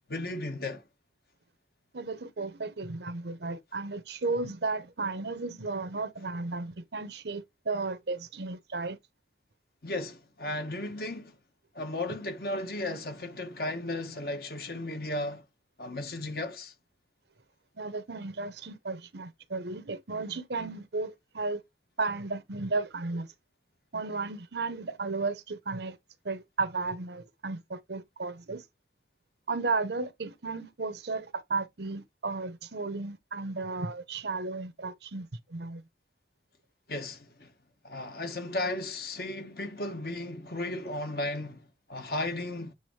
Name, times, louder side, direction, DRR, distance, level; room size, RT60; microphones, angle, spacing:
voice 1, 0.1-0.8 9.8-11.4 11.7-15.4 15.8-16.7 36.9-37.5 37.8-42.7, left 2 dB, 55° left, 1.3 m, -35 dB
voice 2, 1.9-9.0 17.8-21.6 22.0-23.3 23.9-26.0 26.2-28.6 29.5-35.8, right 3 dB, 70° right, 0.8 m, -34 dB
8.0 x 3.6 x 3.2 m
head